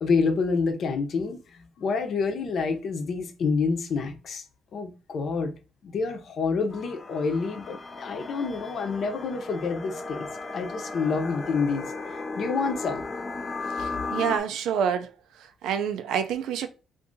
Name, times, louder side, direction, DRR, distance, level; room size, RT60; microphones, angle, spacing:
voice 1, 0.0-4.4 4.7-5.5 5.8-10.3 10.5-13.0, left 4 dB, 60° left, 0.8 m, -28 dB
sound 1, 6.7-14.4, left 3 dB, 30° left, 0.5 m, -35 dB
voice 2, 13.8-15.1 15.6-16.7, right 8 dB, 85° right, 0.4 m, -27 dB
2.7 x 2.6 x 3.7 m
cardioid pair, 90°, 0 cm